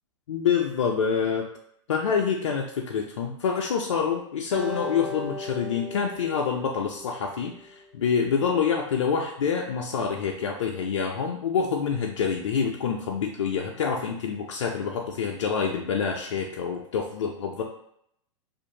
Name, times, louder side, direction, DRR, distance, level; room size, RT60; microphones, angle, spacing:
voice 1, 0.3-1.4 1.9-17.6, left 6 dB, 75° left, 1 dB, 0.4 m, -27 dB
Acoustic guitar, 4.5-7.9, left 2 dB, 5° right, 0.7 m, -37 dB
2.5 x 2.4 x 2.7 m, 0.71 s
hypercardioid pair, 100°, 16 cm